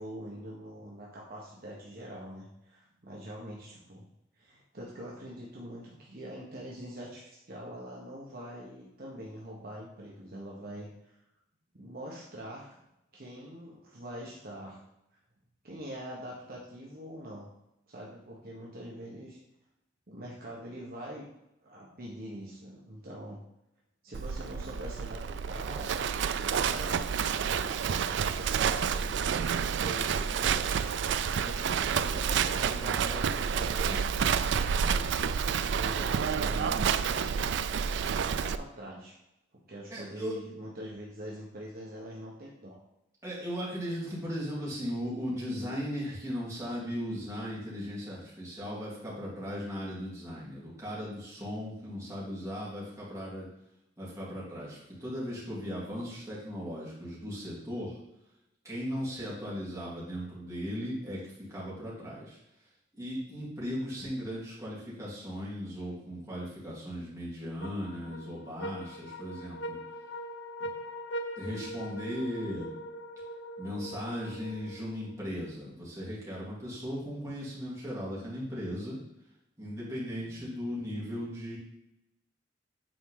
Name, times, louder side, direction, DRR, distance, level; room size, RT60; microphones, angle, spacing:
voice 1, 0.0-4.0 4.4-10.9 11.7-12.8 13.1-14.8 15.6-17.5 17.9-19.4 20.1-21.3 21.6-23.4 24.0-26.0 26.4-27.1 27.4-34.0 34.8-37.5 38.2-39.1 39.7-42.8, equal, 50° right, -4 dB, 1.3 m, -44 dB
Livestock farm animals working animals, 24.1-38.6, right 7 dB, 65° right, 0.4 m, -29 dB
voice 2, 39.9-40.4 43.2-53.5 54.0-58.0 58.6-62.4 62.9-69.8 70.6-70.7 71.4-72.7 73.6-79.0 79.6-81.6, equal, 15° right, -8 dB, 3.0 m, -37 dB
sound 1, 67.6-75.2, equal, 85° left, 0.8 m, -41 dB
9.2 x 4.5 x 3.9 m, 0.85 s
head